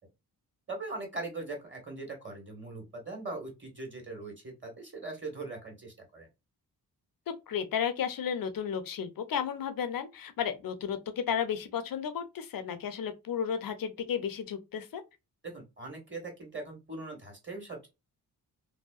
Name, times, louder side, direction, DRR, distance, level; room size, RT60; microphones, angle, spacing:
voice 1, 0.7-6.3 15.4-17.9, right 2 dB, 30° right, 1.5 m, -41 dB
voice 2, 7.5-15.0, left 8 dB, 55° left, 0.6 m, -33 dB
2.7 x 2.1 x 2.4 m
cardioid pair, 50°, 41 cm